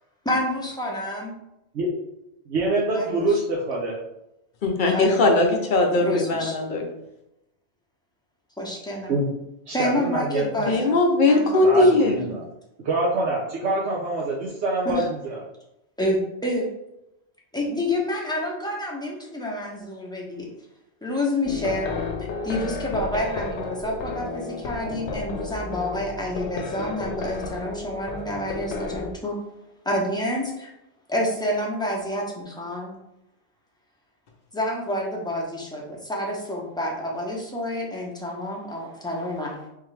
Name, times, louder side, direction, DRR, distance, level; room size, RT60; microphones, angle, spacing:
voice 1, 0.2-1.3 2.9-3.4 4.9-5.4 6.0-6.6 8.6-9.1 9.7-10.9 11.3-12.1 14.8-15.1 16.0-16.7 17.5-20.5 21.0-21.9 22.4-29.4 29.8-30.7 31.1-33.0 34.5-39.6, left 1 dB, 5° left, -3 dB, 0.7 m, -28 dB
voice 2, 2.5-3.9 9.1-9.3 9.7-10.5 11.6-12.4 12.8-15.4, right 2 dB, 75° right, -5 dB, 1.0 m, -25 dB
voice 3, 4.6-6.8 10.7-12.2, left 2 dB, 50° left, 2 dB, 0.8 m, -19 dB
sound 1, 21.4-29.1, left 4 dB, 85° left, 0.9 m, -32 dB
3.8 x 2.9 x 3.2 m, 0.86 s
omnidirectional pair, 1.1 m